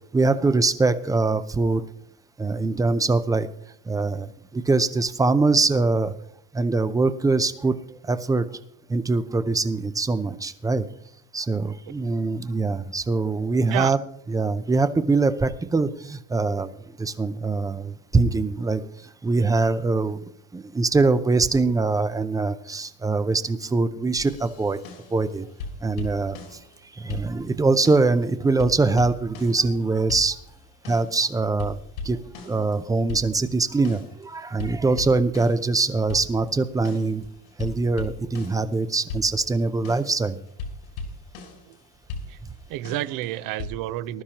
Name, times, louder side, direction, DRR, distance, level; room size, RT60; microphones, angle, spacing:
voice 1, 0.1-1.8 2.4-3.5 3.9-6.1 6.5-7.8 8.1-8.5 8.9-10.8 11.3-14.0 14.3-16.7 17.0-18.8 19.2-20.2 20.5-24.8 25.1-25.5 25.8-26.4 27.0-30.4 30.9-31.8 32.0-32.2 32.4-37.2 37.6-40.4, right 3 dB, 10° right, 12 dB, 0.5 m, -23 dB
sound 1, 24.2-25.3 25.6-26.8 27.1-28.2 28.6-29.8 30.1-31.2 31.6-34.2 34.6-38.8 39.1-41.7 42.1-43.7, left 3 dB, 85° left, 4.6 m, -38 dB
voice 2, 42.7-44.2, right 14 dB, 50° right, 15 dB, 0.7 m, -30 dB
20.0 x 12.0 x 2.9 m, 0.71 s
supercardioid pair, 140°, 41 cm